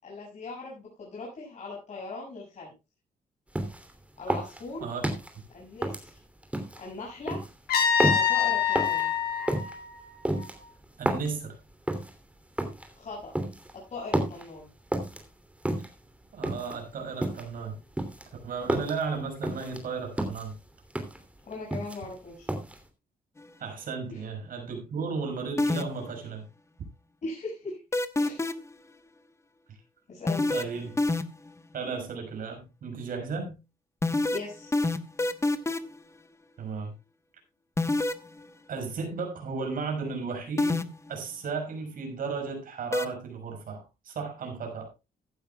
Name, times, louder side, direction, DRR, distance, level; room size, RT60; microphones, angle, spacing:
voice 1, 0.0-2.7 4.2-4.9 5.5-6.2 6.8-7.4 8.1-9.1 13.0-13.3 13.7-14.7 21.5-22.5 24.1-24.2 27.2-27.8 28.2-28.4 30.1-30.5 34.3-34.7, left 3 dB, 45° left, 6.6 m, -39 dB
sound 1, 3.5-3.9 4.3-5.3 5.8-6.8 7.3-7.5 8.0-8.3 8.7-9.0 9.5-9.7 10.2-11.3 11.9-12.1 12.6-12.9 13.3-13.7 14.1-14.5 14.9-15.2 15.6-16.0 16.4-16.8 17.2-17.6 18.0-19.0 19.4-19.8 20.2-20.5 20.9-21.2 21.5-22.2 22.5-22.8, right 1 dB, 10° right, 2.9 m, -30 dB
Trumpet, 7.7-10.6, left 7 dB, 85° left, 4.5 m, -26 dB
voice 2, 11.0-11.6 16.3-17.8 18.4-20.6 23.6-26.5 30.5-31.0 31.7-33.6 36.6-36.9 38.7-44.9, right 5 dB, 65° right, 6.2 m, -34 dB
sound 2, 25.6-26.1 27.9-28.7 30.3-31.5 34.0-36.0 37.8-38.3 40.6-41.1 42.9-43.1, left 2 dB, 15° left, 1.2 m, -26 dB
15.5 x 12.0 x 2.3 m
cardioid pair, 105°, 16 cm